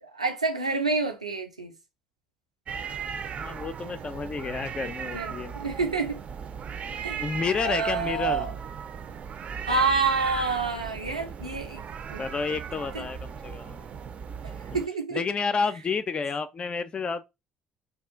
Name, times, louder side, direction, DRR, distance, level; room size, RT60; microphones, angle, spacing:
voice 1, 0.0-1.7 5.1-6.2 7.0-7.2 7.6-8.5 9.7-11.8 12.1-12.2 12.9-13.0 14.7-15.2, right 4 dB, 90° right, 0.5 m, -28 dB
sound 1, 2.7-14.9, right 7 dB, 40° right, 0.5 m, -37 dB
voice 2, 3.4-5.6 7.2-8.5 12.2-13.9 15.1-17.2, left 5 dB, 30° left, 0.4 m, -30 dB
2.8 x 2.4 x 3.5 m
figure-of-eight pair, 55°, 3 cm